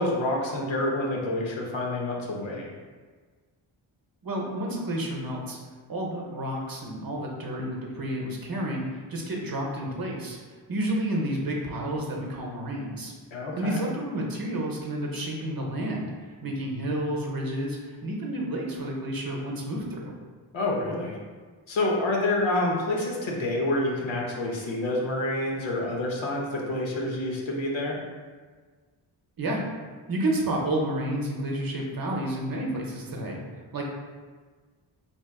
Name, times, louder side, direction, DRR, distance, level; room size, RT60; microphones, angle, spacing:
voice 1, 0.0-2.8 13.3-13.8 20.5-21.2 21.7-28.0, left 1 dB, 65° left, -2 dB, 0.8 m, -28 dB
voice 2, 4.2-5.6 5.9-10.4 10.7-13.1 13.6-20.1 29.4-29.6 30.1-33.4 33.7-33.8, right 1 dB, 45° right, -1 dB, 0.8 m, -30 dB
3.4 x 2.9 x 2.3 m, 1.5 s
cardioid pair, 45°, 49 cm